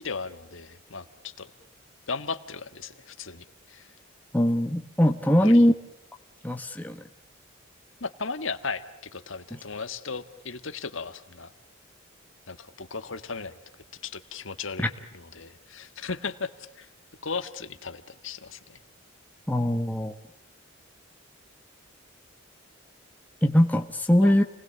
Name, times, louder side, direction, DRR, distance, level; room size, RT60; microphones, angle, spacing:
voice 1, 0.0-1.5 2.1-3.9 5.4-5.7 8.0-11.5 12.5-13.5 14.0-16.9 17.2-18.8 24.2-24.3, left 4 dB, 65° left, 10 dB, 1.5 m, -36 dB
voice 2, 4.3-5.7 6.4-7.0 14.8-14.9 19.5-20.1 23.4-24.4, equal, 10° left, 4 dB, 1.2 m, -21 dB
29.5 x 20.5 x 8.8 m, 0.79 s
head